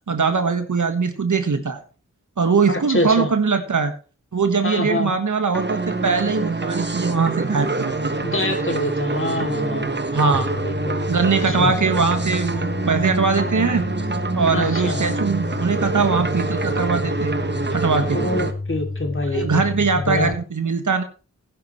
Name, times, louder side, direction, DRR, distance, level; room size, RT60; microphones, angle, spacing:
voice 1, 0.1-1.8 2.4-3.9 4.3-8.1 10.1-10.5 11.1-13.8 14.4-17.3 17.7-18.2 19.3-21.0, right 5 dB, 80° right, 7 dB, 1.6 m, -21 dB
voice 2, 2.7-3.3 4.6-5.1 8.2-10.0 10.5-11.0 11.5-11.8 14.5-15.2 18.1-20.3, left 1 dB, 45° left, 3 dB, 2.8 m, -25 dB
sound 1, 5.5-18.5, right 3 dB, 35° right, 1.3 m, -26 dB
sound 2, 10.3-20.3, left 2 dB, 10° left, 1.0 m, -30 dB
15.5 x 10.5 x 3.2 m, 0.35 s
wide cardioid pair, 45°, 30 cm